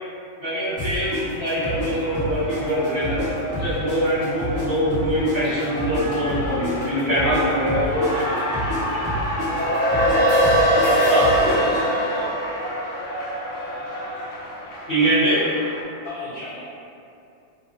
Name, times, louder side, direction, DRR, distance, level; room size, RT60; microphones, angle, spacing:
voice 1, 0.4-3.2 3.5-8.1 11.0-11.6 14.9-15.4, equal, 30° right, -17 dB, 0.4 m, -23 dB
Cheering, 0.6-15.8, equal, 70° left, 1.5 m, -32 dB
sound 1, 0.8-3.3 3.5-7.4 7.7-11.8, equal, 35° left, 1.0 m, -29 dB
voice 2, 7.2-9.3, right 1 dB, 75° right, -6 dB, 1.8 m, -36 dB
sound 2, 9.4-14.0, equal, 50° left, 1.6 m, -21 dB
voice 3, 10.8-12.3 16.0-16.6, left 1 dB, 85° left, -10 dB, 1.3 m, -34 dB
4.7 x 2.1 x 2.7 m, 2.6 s
omnidirectional pair, 3.4 m